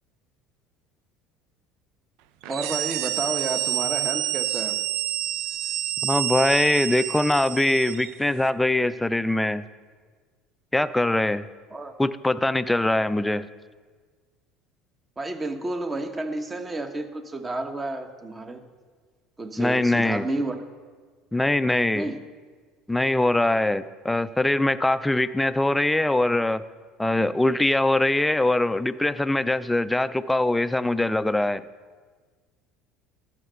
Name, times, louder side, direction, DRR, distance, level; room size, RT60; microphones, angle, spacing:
sound 1, 2.4-8.1, right 13 dB, 70° right, 0.5 m, -28 dB
voice 1, 2.5-4.8 11.7-11.9 15.2-18.6 19.4-20.6 21.9-22.2, right 2 dB, 25° right, 7 dB, 1.1 m, -31 dB
voice 2, 6.0-9.6 10.7-11.5 12.0-13.5 19.6-20.3 21.3-22.1 22.9-26.6 27.0-31.6, left 1 dB, 10° left, 15 dB, 0.4 m, -22 dB
12.5 x 6.7 x 6.7 m, 1.5 s
hypercardioid pair, 70°, 0 cm